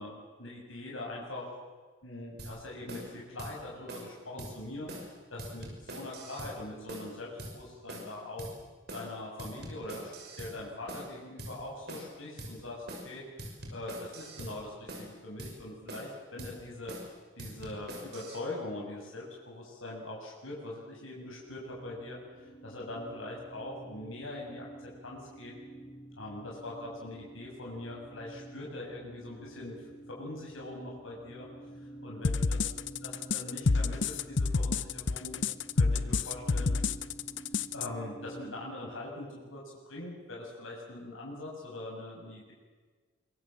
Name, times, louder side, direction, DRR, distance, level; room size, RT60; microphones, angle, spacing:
voice 1, 0.0-1.5 2.0-4.9 5.3-8.5 8.9-10.1 10.4-13.2 13.7-16.9 17.4-25.5 26.2-29.8 30.1-31.5 32.0-32.6 33.0-35.5 35.7-36.7 37.7-42.5, left 2 dB, 90° left, -2 dB, 6.7 m, -42 dB
sound 1, 2.4-2.5 2.9-3.1 3.4-3.5 3.9-4.1 4.4-4.5 4.9-5.1 5.4-6.5 6.9-7.1 7.4-7.5 7.9-8.1 8.4-8.5 8.9-9.1 9.4-10.5 10.9-11.1 11.4-11.5 11.9-12.1 12.4-12.5 12.9-13.1 13.4-14.5 14.9-15.1 15.4-15.5 15.9-16.1 16.4-16.5 16.9-17.1 17.4-18.4, right 1 dB, 55° right, 6.1 m, -43 dB
sound 2, 21.4-38.5, right 1 dB, 5° right, 7.6 m, -50 dB
sound 3, 32.2-37.9, left 4 dB, 65° left, 0.8 m, -28 dB
25.0 x 23.0 x 7.6 m, 1.4 s
head